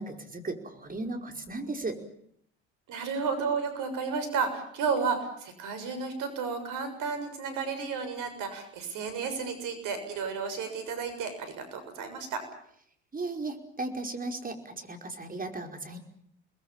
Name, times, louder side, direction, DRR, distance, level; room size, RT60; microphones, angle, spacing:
voice 1, 0.0-2.0 13.1-16.0, right 2 dB, 25° right, 5 dB, 5.1 m, -36 dB
voice 2, 2.9-12.4, right 5 dB, 65° right, 9 dB, 7.0 m, -32 dB
28.5 x 21.0 x 7.4 m, 0.69 s
hypercardioid pair, 65°, 33 cm